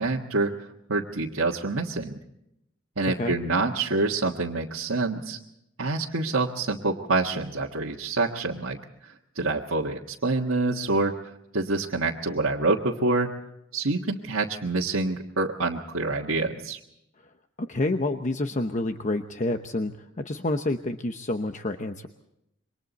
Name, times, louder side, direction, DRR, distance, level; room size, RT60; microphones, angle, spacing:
voice 1, 0.0-2.1 3.0-5.4 5.8-8.8 9.3-11.1 11.5-13.3 13.7-16.8, right 3 dB, 85° right, -3 dB, 1.6 m, -26 dB
voice 2, 17.6-22.1, left 2 dB, 35° left, 7 dB, 0.9 m, -28 dB
28.0 x 24.0 x 4.2 m, 0.80 s
head